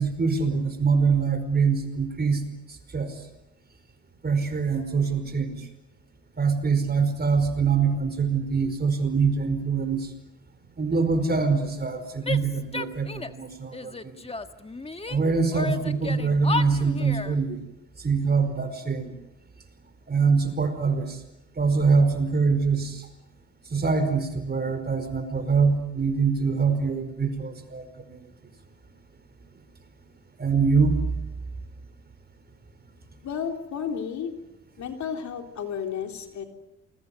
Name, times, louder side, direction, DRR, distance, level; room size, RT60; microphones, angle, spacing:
voice 1, 0.0-2.4 2.9-3.1 4.2-5.6 6.4-10.1 10.8-13.9 15.1-17.6 18.0-19.1 20.1-21.2 21.6-23.0 23.7-28.2 30.4-31.0, right 5 dB, 30° right, 9 dB, 5.1 m, -24 dB
Female speech woman speaking / Yell, 12.2-13.4 13.7-15.2 15.5-17.4, left 3 dB, 20° left, 1.6 m, -33 dB
voice 2, 33.2-34.3 34.8-36.4, left 7 dB, 70° left, 4 dB, 3.8 m, -32 dB
28.5 x 22.5 x 8.0 m, 0.92 s
cardioid pair, 90°, 30 cm